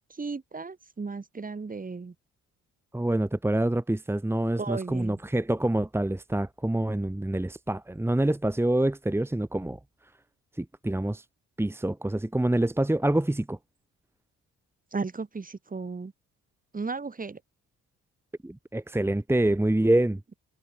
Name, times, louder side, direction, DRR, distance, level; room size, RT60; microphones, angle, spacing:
voice 1, 0.2-2.1 4.6-5.2 14.9-16.1 16.7-17.4, right 4 dB, 30° right, 5.9 m, -35 dB
voice 2, 2.9-9.8 10.6-11.2 11.6-13.6 18.4-20.2, right 1 dB, 10° right, 1.9 m, -26 dB
cardioid pair, 90°, 30 cm